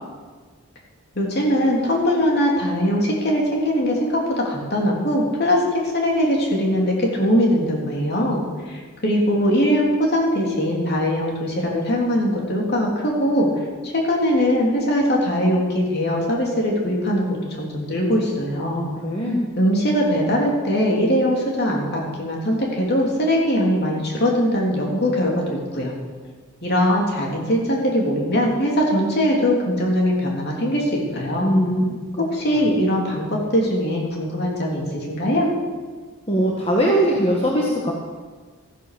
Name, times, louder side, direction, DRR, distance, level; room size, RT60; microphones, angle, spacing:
voice 1, 1.1-13.5 13.8-18.8 19.6-26.0 26.6-31.5 32.3-35.5, equal, 45° left, -1 dB, 3.2 m, -21 dB
voice 2, 18.6-19.4 31.4-32.2 36.3-37.9, equal, 25° left, -2 dB, 1.4 m, -21 dB
14.0 x 11.0 x 6.7 m, 1.4 s
head